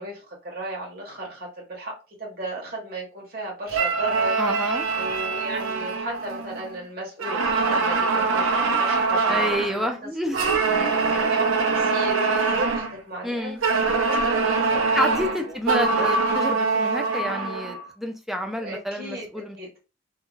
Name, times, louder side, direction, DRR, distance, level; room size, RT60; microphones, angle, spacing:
voice 1, 0.0-1.9 2.2-4.3 5.0-10.0 11.3-15.1 15.5-15.8 18.5-19.7, right 1 dB, 50° right, -3 dB, 1.0 m, -35 dB
sound 1, 3.7-6.8 7.2-9.8 10.3-13.0 13.6-17.8, right 4 dB, 80° right, 0.6 m, -23 dB
voice 2, 4.4-4.9 9.3-10.4 13.2-13.6 15.0-19.6, equal, ahead, 4 dB, 0.3 m, -29 dB
2.4 x 2.2 x 3.0 m, 0.32 s
head